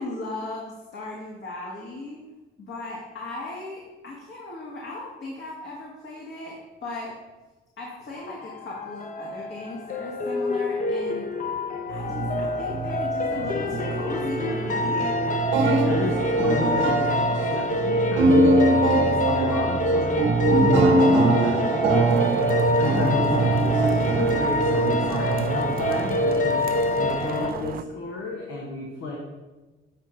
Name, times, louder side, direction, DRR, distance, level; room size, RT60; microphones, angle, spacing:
voice 1, 0.0-2.2 2.6-7.2 7.8-11.3 11.9-15.4 16.0-16.1 19.3-19.6 25.6-26.2 27.1-27.7, left 2 dB, 60° left, -3 dB, 1.7 m, -37 dB
sound 1, 8.2-27.5, left 2 dB, 40° left, 0.8 m, -26 dB
sound 2, 11.9-26.6, right 3 dB, 75° right, 1.2 m, -23 dB
voice 2, 15.8-29.2, left 2 dB, 85° left, -2 dB, 1.3 m, -32 dB
sound 3, 22.1-27.8, right 9 dB, 50° right, 0.4 m, -34 dB
7.8 x 4.5 x 5.0 m, 1.2 s
cardioid pair, 90°, 20 cm